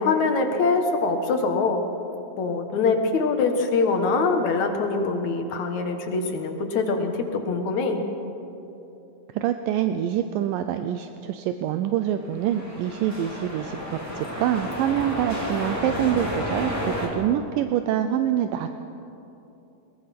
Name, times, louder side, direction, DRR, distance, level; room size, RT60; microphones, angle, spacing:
voice 1, 0.0-1.8 2.4-8.0, left 4 dB, 60° left, 5 dB, 2.5 m, -23 dB
voice 2, 9.3-18.8, right 10 dB, 80° right, 8 dB, 2.2 m, -26 dB
sound 1, 12.2-17.1, equal, 5° right, 2.5 m, -31 dB
21.0 x 21.0 x 5.9 m, 2.9 s
omnidirectional pair, 4.1 m